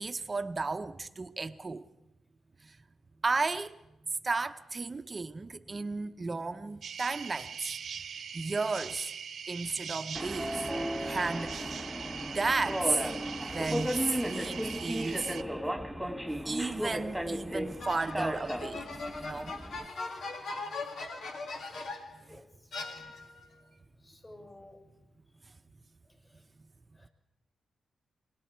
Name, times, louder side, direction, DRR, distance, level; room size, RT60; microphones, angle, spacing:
voice 1, 0.0-1.8 2.6-2.8 3.2-3.8 4.2-7.8 8.3-9.1 9.5-10.6 11.0-11.8 12.2-13.0 13.4-15.3 16.4-18.9 19.2-19.5, right 3 dB, 35° right, 0.8 m, -33 dB
sound 1, 6.8-15.4, right 7 dB, 70° right, 1.0 m, -41 dB
Subway metro underground, 10.1-19.9, equal, 5° right, 2.0 m, -35 dB
sound 2, 17.8-22.2 22.7-23.5, left 3 dB, 70° left, 2.3 m, -40 dB
voice 2, 22.2-22.7 24.0-25.1 26.3-26.4 26.9-27.1, left 1 dB, 30° left, 6.5 m, -54 dB
26.5 x 21.5 x 4.5 m
cardioid pair, 60°, 0 cm